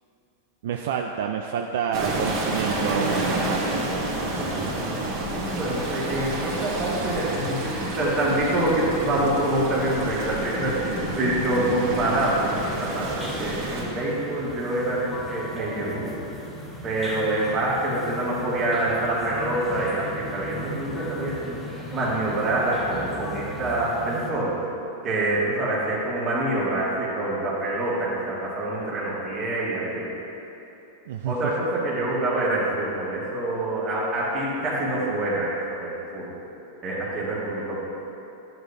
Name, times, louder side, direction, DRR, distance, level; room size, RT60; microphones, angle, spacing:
voice 1, 0.6-4.1 31.1-31.3, right 7 dB, 75° right, 3 dB, 0.4 m, -28 dB
sound 1, 1.9-13.8, right 2 dB, 50° right, 2.0 m, -29 dB
voice 2, 5.3-16.2 16.8-24.6 25.0-30.1 31.3-36.3 36.8-37.8, right 1 dB, 30° right, -8 dB, 1.7 m, -26 dB
sound 2, 12.6-24.3, left 1 dB, 10° left, 0.9 m, -37 dB
11.5 x 7.8 x 2.7 m, 2.9 s
supercardioid pair, 155°, 0 cm